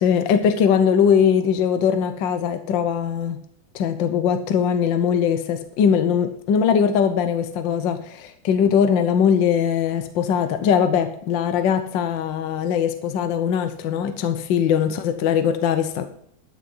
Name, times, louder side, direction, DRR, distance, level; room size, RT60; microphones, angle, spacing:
voice 1, 0.0-3.4 3.7-16.0, left 7 dB, 65° left, 8 dB, 1.5 m, -21 dB
12.0 x 6.4 x 5.5 m, 0.65 s
omnidirectional pair, 2.3 m